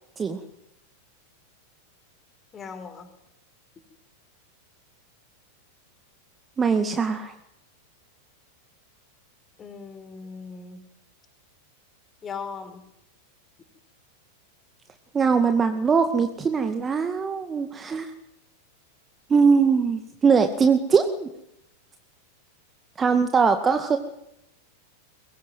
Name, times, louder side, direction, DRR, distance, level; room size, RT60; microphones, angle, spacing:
voice 1, 2.5-3.1 9.6-10.8 12.2-12.9, left 5 dB, 20° left, 8 dB, 5.2 m, -38 dB
voice 2, 6.6-7.3 15.1-18.1 19.3-21.3 23.0-24.0, right 5 dB, 20° right, 8 dB, 2.0 m, -21 dB
23.0 x 21.5 x 9.4 m, 0.81 s
figure-of-eight pair, 90°, 0 cm